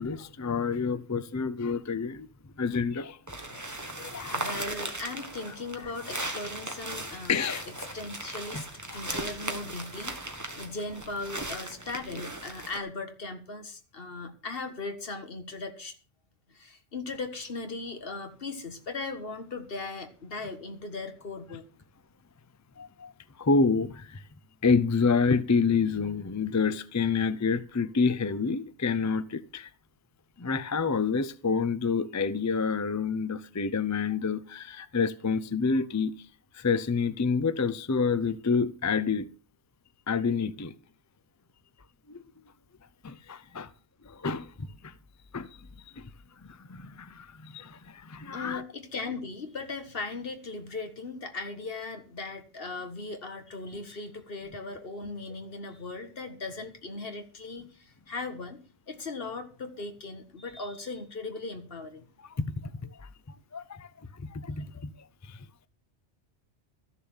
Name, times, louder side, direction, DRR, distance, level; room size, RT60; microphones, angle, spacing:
voice 1, 0.0-2.3 2.6-3.2 4.0-4.5 7.3-7.6 8.5-8.6 8.9-9.2 22.8-23.1 23.4-24.2 24.6-29.7 30.4-36.1 36.5-39.3 40.1-40.7 42.1-42.2 43.0-43.7 44.1-44.9 45.3-45.5 46.0-46.1 46.5-48.6 62.3-62.7 63.0-64.9 65.2-65.4, left 5 dB, 25° left, 0.4 m, -28 dB
sound 1, 3.3-12.8, right 1 dB, 15° right, 1.4 m, -38 dB
voice 2, 4.3-7.4 7.9-8.7 8.9-15.9 16.5-21.7 48.3-58.6 58.9-62.1, left 3 dB, 55° left, 1.7 m, -38 dB
13.5 x 6.9 x 7.1 m
omnidirectional pair, 1.1 m